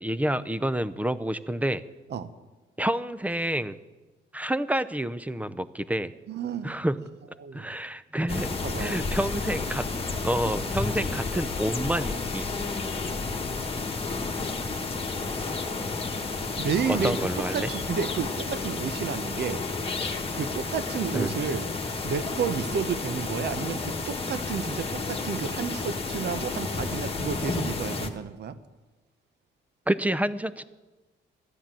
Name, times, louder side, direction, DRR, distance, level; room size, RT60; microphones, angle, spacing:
voice 1, 0.0-1.8 2.8-3.8 4.3-6.1 6.6-7.0 7.5-8.5 8.8-9.8 10.2-12.4 16.9-17.7 21.1-21.3 29.9-30.6, right 1 dB, 5° right, 14 dB, 0.6 m, -28 dB
voice 2, 6.3-6.7 7.4-7.7 8.6-9.2 16.6-17.2 17.5-19.6 20.3-21.7 22.0-28.6, right 7 dB, 55° right, 12 dB, 0.9 m, -31 dB
sound 1, 8.3-28.1, left 3 dB, 30° left, 1.4 m, -31 dB
13.0 x 10.0 x 7.6 m, 1.2 s
cardioid pair, 90°, 20 cm